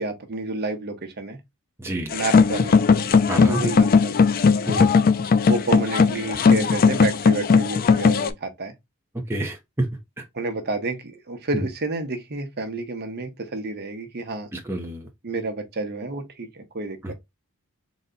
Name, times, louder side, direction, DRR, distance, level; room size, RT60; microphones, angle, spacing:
voice 1, 0.0-1.4 2.1-2.7 3.4-4.2 5.5-8.7 10.3-14.5 15.2-17.1, right 2 dB, 50° right, 0.9 m, -30 dB
voice 2, 1.8-2.1 3.3-3.6 4.7-4.9 9.3-9.9 14.5-15.1, right 1 dB, 10° right, 0.6 m, -28 dB
sound 1, 2.1-8.3, left 5 dB, 40° left, 0.4 m, -18 dB
4.0 x 2.2 x 3.8 m
head